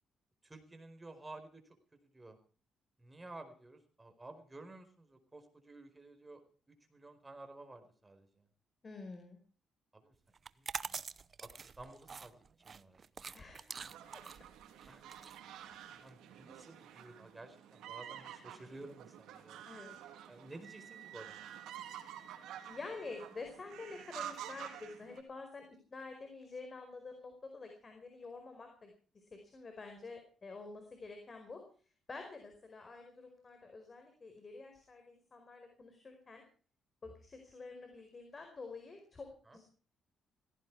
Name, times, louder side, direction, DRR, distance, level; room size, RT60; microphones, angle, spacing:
voice 1, 0.4-1.8 2.0-2.4 3.0-6.4 6.7-8.5 9.9-10.1 10.6-11.0 11.4-13.2 14.8-15.0 15.9-19.6 20.3-21.5 37.0-37.1 39.4-39.6, right 2 dB, 20° right, 7 dB, 4.7 m, -53 dB
voice 2, 8.8-9.4 13.3-13.7 19.7-20.0 22.7-25.6 25.9-28.9 29.5-31.6 32.1-36.4 37.0-39.6, left 3 dB, 35° left, 5 dB, 4.8 m, -48 dB
sound 1, 10.4-16.1, right 5 dB, 40° right, 0.8 m, -45 dB
sound 2, 13.7-25.2, right 10 dB, 85° right, 3.3 m, -50 dB
Wind instrument woodwind instrument, 20.6-23.4, right 11 dB, 65° right, 1.4 m, -56 dB
17.5 x 16.5 x 4.8 m, 0.40 s
cardioid pair, 90°, 0 cm